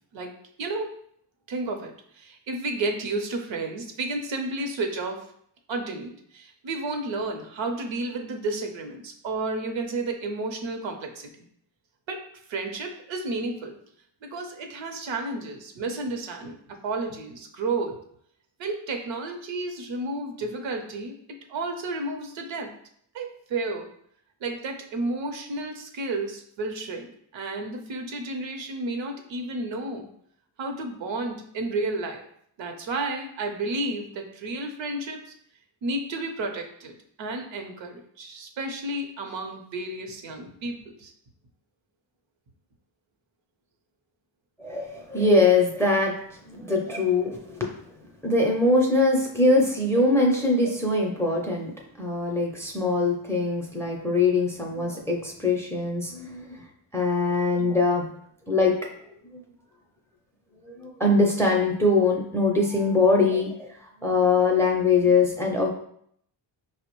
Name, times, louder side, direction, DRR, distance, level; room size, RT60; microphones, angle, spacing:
voice 1, 0.1-1.0 1.5-5.3 5.7-11.5 12.1-12.2 12.5-13.8 14.2-16.6 16.8-18.0 18.6-21.1 21.5-22.7 23.1-23.9 24.4-30.1 30.6-32.3 32.6-35.3 35.8-41.1, right 2 dB, 70° right, 4 dB, 0.7 m, -32 dB
voice 2, 44.6-46.2 46.5-47.7 48.2-51.7 52.0-56.6 56.9-58.1 58.5-58.8 59.3-59.4 60.6-63.7 64.0-65.7, left 3 dB, 5° left, 0 dB, 0.4 m, -22 dB
4.6 x 2.1 x 3.0 m, 0.67 s
cardioid pair, 105°, 46 cm